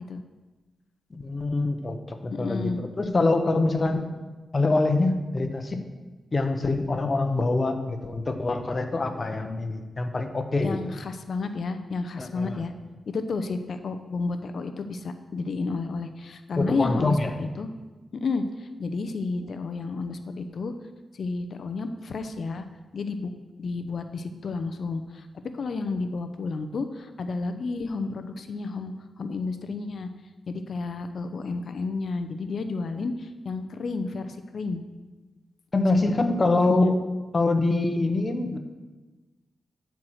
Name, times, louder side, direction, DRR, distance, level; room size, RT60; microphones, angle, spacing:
voice 1, 1.1-4.1 4.5-5.8 6.3-10.8 12.2-12.6 16.6-17.3 35.7-37.0 37.3-38.6, left 2 dB, 35° left, 7 dB, 1.0 m, -25 dB
voice 2, 2.3-2.8 10.6-12.7 13.1-17.7 18.1-20.7 21.1-22.6 22.9-23.3 23.6-25.3 25.5-30.1 30.5-34.8 35.9-37.0, left 3 dB, 65° left, 8 dB, 0.7 m, -31 dB
11.5 x 4.7 x 6.4 m, 1.2 s
cardioid pair, 80°, 0 cm